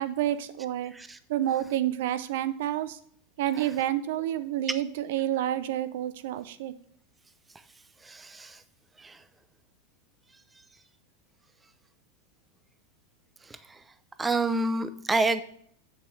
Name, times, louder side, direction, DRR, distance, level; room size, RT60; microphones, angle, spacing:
voice 1, 0.0-0.9 1.3-3.0 3.4-6.7, right 12 dB, 70° right, 14 dB, 0.6 m, -29 dB
voice 2, 8.0-8.6 9.0-9.2 14.2-15.4, right 2 dB, 15° right, 12 dB, 0.6 m, -28 dB
7.7 x 6.6 x 3.2 m, 0.64 s
hypercardioid pair, 115°, 0 cm